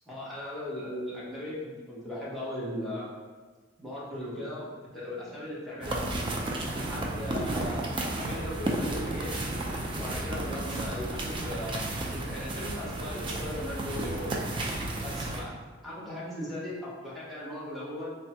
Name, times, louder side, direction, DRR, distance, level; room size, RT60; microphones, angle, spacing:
voice 1, 0.1-3.1 3.8-6.0 6.7-9.4 10.0-11.8 12.0-14.3 15.0-15.5 15.8-18.1, left 1 dB, ahead, -9 dB, 0.7 m, -38 dB
sound 1, 5.8-15.4, right 1 dB, 25° right, 0.3 m, -33 dB
3.3 x 2.1 x 2.8 m, 1.4 s
head